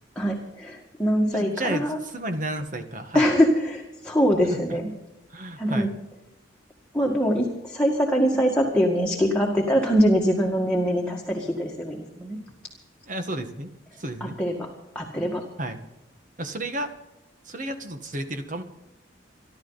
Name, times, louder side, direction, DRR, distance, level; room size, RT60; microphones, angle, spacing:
voice 1, 0.2-2.0 3.1-4.9 5.6-5.9 6.9-12.4 14.2-14.7 15.0-15.4, equal, 5° left, -2 dB, 1.9 m, -23 dB
voice 2, 1.2-3.3 5.3-5.9 13.1-13.7 14.0-14.4 15.6-15.8 16.4-16.9 17.5-18.6, right 1 dB, 45° right, 6 dB, 1.7 m, -32 dB
26.5 x 12.0 x 4.1 m, 0.94 s
head